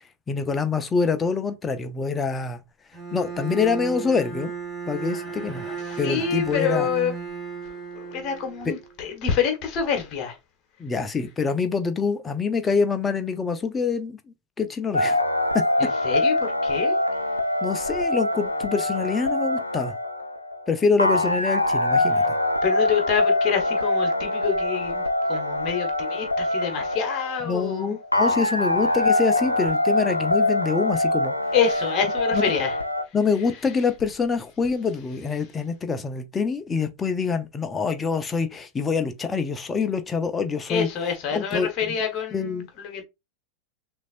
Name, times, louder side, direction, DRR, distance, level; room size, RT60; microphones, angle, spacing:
voice 1, 0.3-2.6 3.1-4.5 4.9-5.6 6.0-6.9 10.8-14.2 14.6-15.2 17.6-19.9 20.7-22.3 27.5-31.3 32.3-32.4 33.1-40.9 41.3-41.7 42.3-42.7, left 5 dB, 15° left, 0.7 m, -25 dB
Bowed string instrument, 2.9-8.9, right 6 dB, ahead, 2.3 m, -34 dB
voice 2, 5.8-7.1 7.6-10.4 15.8-17.0 22.1-22.3 22.6-28.0 31.5-32.8 33.0-33.1 40.7-43.0, left 7 dB, 35° left, 1.5 m, -27 dB
sound 1, 14.9-33.0, left 1 dB, 85° left, 0.4 m, -24 dB
6.1 x 2.7 x 2.6 m
figure-of-eight pair, 90°, 0 cm